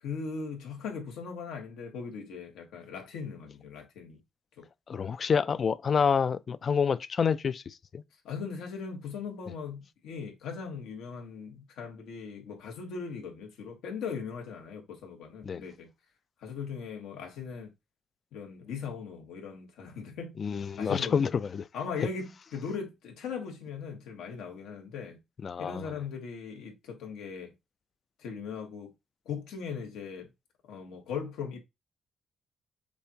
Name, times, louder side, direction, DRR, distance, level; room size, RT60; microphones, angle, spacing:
voice 1, 0.0-4.2 4.6-4.7 8.2-15.9 16.4-17.7 18.3-20.3 20.8-21.3 21.7-25.2 25.6-27.5 28.2-28.9 29.2-30.3 30.7-31.6, left 6 dB, 90° left, 1.3 m, -39 dB
voice 2, 4.9-8.0 15.4-15.6 20.4-21.7 25.4-25.9, left 6 dB, 45° left, 0.3 m, -28 dB
6.8 x 2.5 x 2.9 m
cardioid pair, 90°, 0 cm